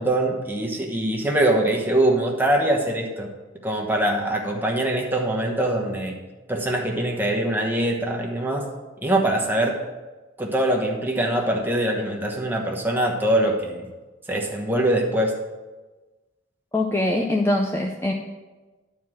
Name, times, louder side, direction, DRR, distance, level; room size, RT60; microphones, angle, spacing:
voice 1, 0.0-3.3 3.6-6.1 6.5-8.7 9.0-9.8 10.4-13.9 14.3-15.3, right 1 dB, 10° right, 0 dB, 1.1 m, -23 dB
voice 2, 16.7-18.1, left 1 dB, 15° left, 1 dB, 0.5 m, -23 dB
11.0 x 4.6 x 6.2 m, 1.2 s
head